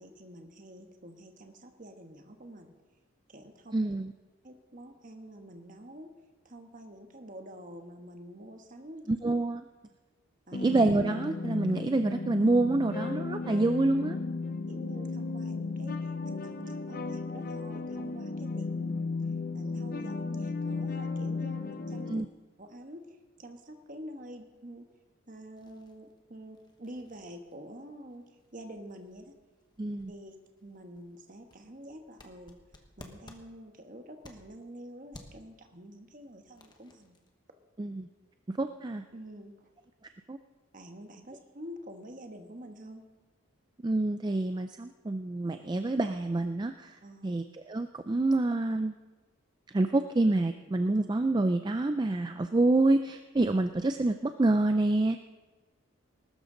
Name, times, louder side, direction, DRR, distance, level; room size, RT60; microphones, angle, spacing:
voice 1, 0.0-2.7 3.3-3.8 4.4-6.1 6.4-9.1 10.5-10.6 14.7-19.0 19.5-22.1 22.6-23.0 23.4-24.9 25.3-29.3 30.1-30.4 30.6-37.1 39.1-39.7 40.7-43.0 47.0-47.4, equal, 40° right, 5 dB, 1.3 m, -47 dB
voice 2, 3.7-4.1 9.1-9.6 10.6-14.2 22.1-22.3 29.8-30.1 37.8-38.1 38.5-39.0 40.3-40.4 43.8-47.0 47.2-48.9 49.7-55.2, right 2 dB, 20° right, 8 dB, 0.3 m, -27 dB
sound 1, 10.5-22.2, left 3 dB, 45° left, 0.6 m, -35 dB
sound 2, 25.5-34.7 35.1-35.5 36.1-37.3, left 1 dB, 20° left, 1.2 m, -56 dB
19.5 x 12.5 x 3.9 m, 1.2 s
head